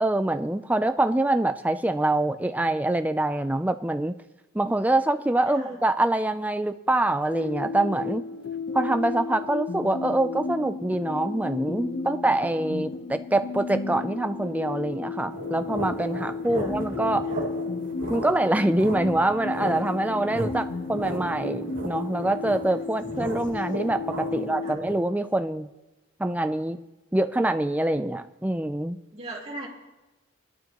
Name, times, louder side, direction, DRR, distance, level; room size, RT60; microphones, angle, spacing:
voice 1, 0.0-4.1 4.5-8.2 8.7-17.3 18.1-25.7 26.2-26.8 27.1-29.0, right 1 dB, 10° right, 9 dB, 0.4 m, -25 dB
voice 2, 5.5-5.8 16.5-16.7 17.3-17.5 20.6-20.8 24.3-24.8 29.1-29.7, right 2 dB, 35° right, -4 dB, 3.4 m, -40 dB
sound 1, 7.3-24.8, left 3 dB, 55° left, 1.0 m, -34 dB
sound 2, 15.3-25.0, right 1 dB, 70° right, 2.8 m, -36 dB
20.0 x 12.0 x 3.0 m, 1.1 s
head